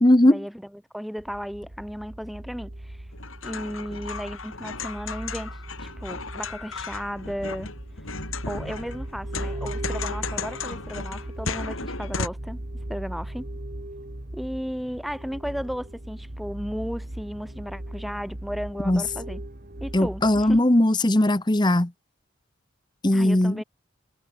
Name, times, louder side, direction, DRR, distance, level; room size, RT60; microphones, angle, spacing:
voice 1, 0.0-0.4 18.9-19.0 19.9-21.9 23.0-23.6, left 1 dB, 20° left, 0.9 m, -19 dB
voice 2, 0.9-3.0 3.4-7.7 8.5-12.6 12.9-13.5 14.3-19.4 19.8-20.6 23.1-23.6, equal, ahead, 4.7 m, -34 dB
sound 1, 1.2-20.6, right 1 dB, 45° right, 1.9 m, -38 dB
sound 2, 3.1-12.3, left 4 dB, 80° left, 3.8 m, -35 dB
head